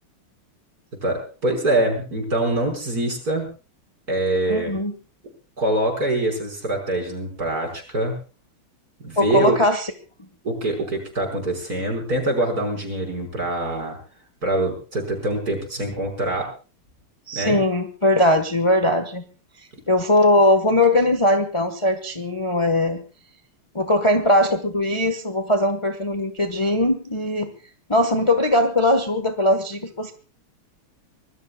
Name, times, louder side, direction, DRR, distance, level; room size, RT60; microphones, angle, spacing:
voice 1, 1.0-3.5 4.1-4.7 5.6-8.2 9.0-9.6 10.4-14.0 14.4-16.5 17.3-17.6, right 1 dB, 40° right, 2 dB, 6.1 m, -24 dB
voice 2, 4.5-4.9 9.2-9.9 17.3-19.2 19.9-23.0 23.7-27.5 27.9-30.1, left 1 dB, 15° left, 7 dB, 1.2 m, -20 dB
25.0 x 20.5 x 2.4 m, 0.35 s
omnidirectional pair, 2.4 m